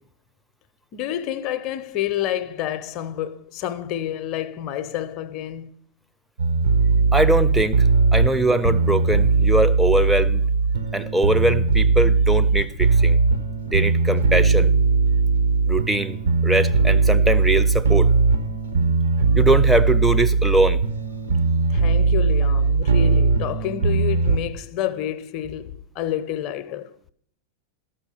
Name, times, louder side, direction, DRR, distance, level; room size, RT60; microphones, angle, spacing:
voice 1, 0.9-5.7 21.7-27.0, left 11 dB, 40° left, 0.6 m, -29 dB
sound 1, 6.4-24.4, right 4 dB, 65° right, 1.1 m, -19 dB
voice 2, 7.1-10.4 10.9-13.2 13.7-14.7 15.7-18.1 19.4-20.8, right 1 dB, 5° right, 0.6 m, -22 dB
13.5 x 5.6 x 6.9 m
figure-of-eight pair, 90°, 0 cm